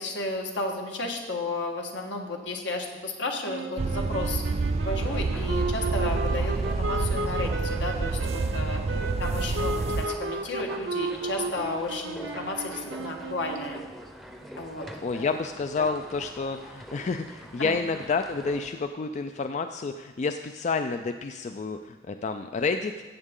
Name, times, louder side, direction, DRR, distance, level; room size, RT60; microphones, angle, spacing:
voice 1, 0.0-4.4 4.8-8.8 9.2-13.8 14.6-15.3 15.8-15.9 17.6-17.8, left 2 dB, 75° left, 2 dB, 1.5 m, -33 dB
sound 1, 3.4-13.9, right 2 dB, 75° right, 0.7 m, -34 dB
sound 2, 3.8-10.1, right 3 dB, 35° right, 0.3 m, -28 dB
sound 3, 5.0-18.7, equal, ahead, 0.7 m, -44 dB
voice 2, 15.0-22.9, left 4 dB, 40° left, 8 dB, 0.3 m, -29 dB
14.5 x 8.0 x 3.7 m, 1.3 s
head